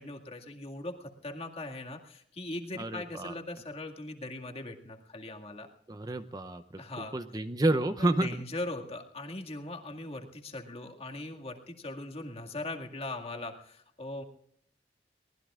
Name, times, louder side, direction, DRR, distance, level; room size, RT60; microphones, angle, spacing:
voice 1, 0.0-5.7 6.8-7.2 8.0-14.2, left 2 dB, 35° left, 3 dB, 2.0 m, -40 dB
voice 2, 2.8-3.3 5.9-6.6 7.1-8.3, right 1 dB, 20° right, 10 dB, 0.7 m, -29 dB
24.0 x 19.0 x 2.5 m, 0.70 s
head